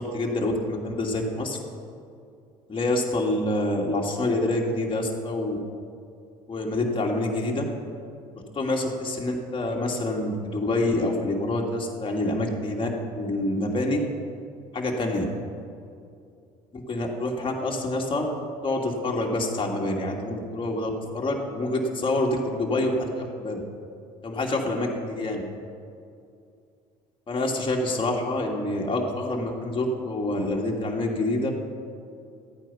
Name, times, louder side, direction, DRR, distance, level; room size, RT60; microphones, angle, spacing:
voice 1, 0.0-1.6 2.7-5.6 6.5-7.6 8.5-12.9 13.2-14.0 14.7-15.2 16.7-18.2 18.6-23.6 24.2-25.4 27.3-31.5, left 2 dB, 30° left, -1 dB, 2.5 m, -27 dB
14.0 x 9.0 x 5.8 m, 2.4 s
hypercardioid pair, 70°, 18 cm